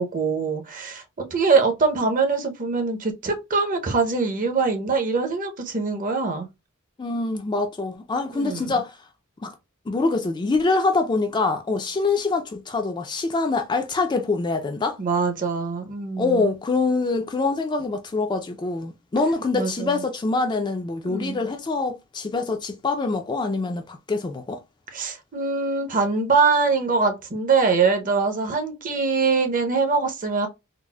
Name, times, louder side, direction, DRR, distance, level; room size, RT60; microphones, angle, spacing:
voice 1, 0.0-6.5 8.3-8.7 15.0-16.5 19.5-20.0 21.0-21.4 24.9-30.5, right 4 dB, 40° right, 0.6 m, -23 dB
voice 2, 7.0-9.0 9.4-9.5 9.9-15.0 16.2-24.6, left 3 dB, 20° left, 0.3 m, -25 dB
3.9 x 2.0 x 2.2 m
head